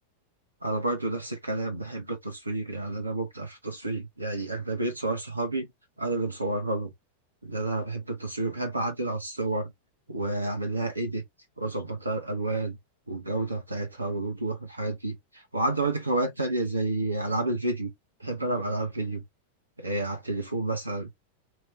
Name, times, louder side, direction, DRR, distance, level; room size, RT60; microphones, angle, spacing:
voice 1, 0.6-5.7 6.0-6.9 7.4-9.7 10.1-11.2 11.6-12.8 13.1-17.9 18.2-19.2 19.8-21.1, right 2 dB, 85° right, 0.9 m, -30 dB
3.7 x 2.9 x 3.1 m
figure-of-eight pair, 90°, 0 cm